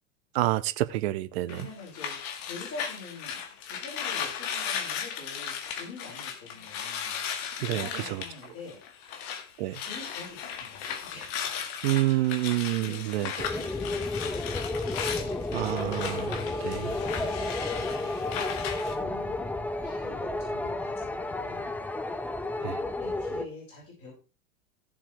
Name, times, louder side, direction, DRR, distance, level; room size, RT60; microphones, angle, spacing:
voice 1, 0.3-1.7 7.6-8.2 9.6-9.8 11.8-13.5 15.5-16.9 22.6-22.8, right 16 dB, 45° right, 0.7 m, -28 dB
sound 1, 1.5-9.5 9.7-18.9, left 8 dB, 50° left, 1.9 m, -36 dB
voice 2, 1.5-9.3 9.8-11.5 12.0-12.4 12.7-15.4 16.4-18.3 19.0-19.5 19.8-21.8 22.6-24.1, left 3 dB, 30° left, 6.2 m, -46 dB
sound 2, 13.4-23.5, left 2 dB, 5° left, 0.5 m, -32 dB
15.5 x 7.3 x 3.3 m
figure-of-eight pair, 85°, 43 cm